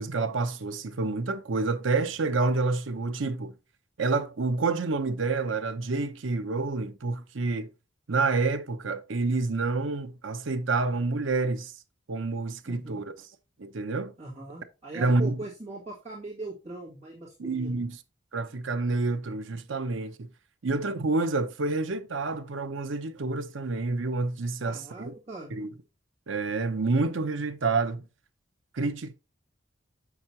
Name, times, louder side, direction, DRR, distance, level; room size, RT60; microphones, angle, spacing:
voice 1, 0.0-3.5 4.0-7.7 8.1-11.7 12.1-13.1 13.6-14.1 14.9-15.4 17.4-18.0 18.3-20.3 20.6-25.1 25.5-25.7 26.3-28.0 28.7-29.2, right 3 dB, 80° right, 0.7 m, -28 dB
voice 2, 12.7-13.1 14.2-17.8 24.6-25.6, right 2 dB, 35° right, 2.0 m, -40 dB
7.6 x 6.0 x 2.8 m
head